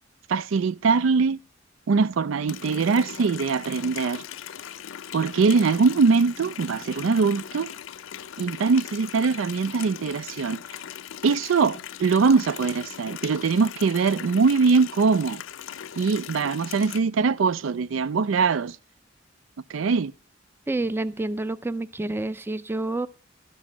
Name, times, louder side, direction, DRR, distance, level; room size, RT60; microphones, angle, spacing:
voice 1, 0.3-1.4 1.9-4.2 5.1-7.7 8.4-10.6 11.2-15.4 15.9-18.8 19.7-20.1, right 4 dB, 90° right, 0.4 m, -22 dB
Water tap faucet, 2.5-17.0, left 10 dB, 90° left, 0.5 m, -39 dB
voice 2, 20.7-23.1, right 2 dB, 10° right, 0.4 m, -28 dB
12.5 x 6.2 x 5.9 m
head